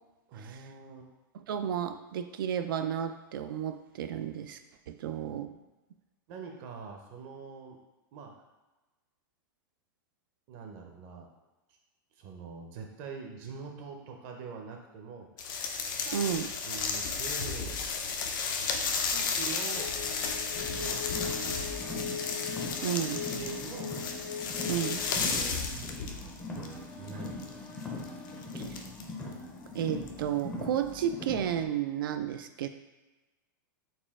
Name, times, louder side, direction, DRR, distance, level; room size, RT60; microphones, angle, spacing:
voice 1, 0.3-1.1 6.3-7.8 8.1-8.3 10.5-11.3 12.2-15.3 15.8-16.2 16.7-17.8 19.0-19.9 20.6-22.1 22.9-23.9 25.1-27.7, right 5 dB, 40° right, 2 dB, 0.6 m, -44 dB
voice 2, 1.3-4.6 4.9-5.5 16.1-16.5 22.8-23.2 24.7-25.0 28.5-28.7 29.7-32.7, right 9 dB, 80° right, 9 dB, 0.4 m, -32 dB
sound 1, 15.4-26.7 27.1-29.3 30.1-30.2 30.8-31.0, left 5 dB, 70° left, 0.5 m, -33 dB
sound 2, 19.7-25.1, left 6 dB, 90° left, 0.8 m, -40 dB
Car, 20.5-31.6, left 2 dB, 10° left, 0.5 m, -41 dB
4.1 x 2.3 x 3.5 m, 1.1 s
supercardioid pair, 145°, 11 cm